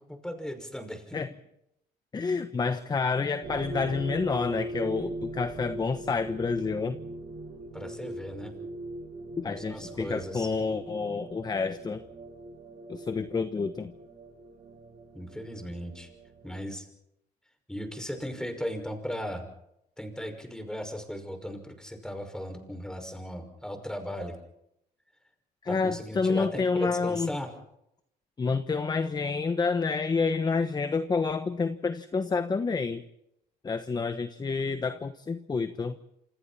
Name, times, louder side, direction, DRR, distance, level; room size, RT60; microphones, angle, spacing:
voice 1, 0.0-1.2 7.7-8.5 9.4-10.5 15.1-16.1 16.4-16.9 17.7-19.4 20.0-24.4 25.7-27.5, equal, 5° left, 4 dB, 5.8 m, -37 dB
voice 2, 2.1-7.0 9.4-12.0 12.9-13.9 25.6-27.3 28.4-33.0 33.6-35.9, left 4 dB, 25° left, 10 dB, 1.2 m, -29 dB
sound 1, 3.4-16.6, right 2 dB, 50° right, 6.1 m, -41 dB
27.5 x 27.0 x 4.3 m, 0.80 s
cardioid pair, 110°, 17 cm